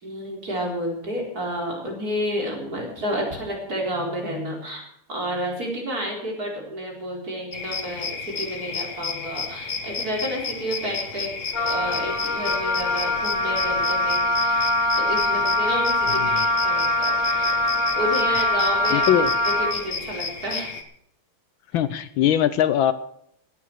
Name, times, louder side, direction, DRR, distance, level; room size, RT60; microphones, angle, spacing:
voice 1, 0.0-4.8 5.1-8.1 8.4-11.3 11.6-14.7 15.0-17.6 17.9-19.0 19.4-20.7, equal, 40° right, 4.9 m, -30 dB
sound 1, 7.5-20.8, left 5 dB, 40° left, 1.5 m, -32 dB
Wind instrument woodwind instrument, 11.5-19.8, left 1 dB, 20° left, 3.1 m, -23 dB
voice 2, 16.1-16.4 18.9-19.3 21.7-22.9, left 10 dB, 75° left, 1.4 m, -21 dB
16.5 x 9.8 x 6.2 m
omnidirectional pair, 2.4 m